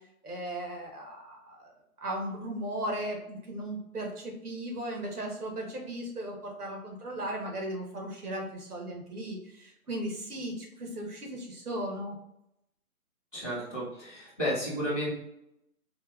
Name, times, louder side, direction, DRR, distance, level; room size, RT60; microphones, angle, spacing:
voice 1, 0.2-1.7 2.0-12.1, right 1 dB, 80° right, 1 dB, 1.4 m, -36 dB
voice 2, 13.3-15.1, equal, 5° right, -22 dB, 0.7 m, -32 dB
4.5 x 2.5 x 2.4 m, 0.82 s
figure-of-eight pair, 155°, 45 cm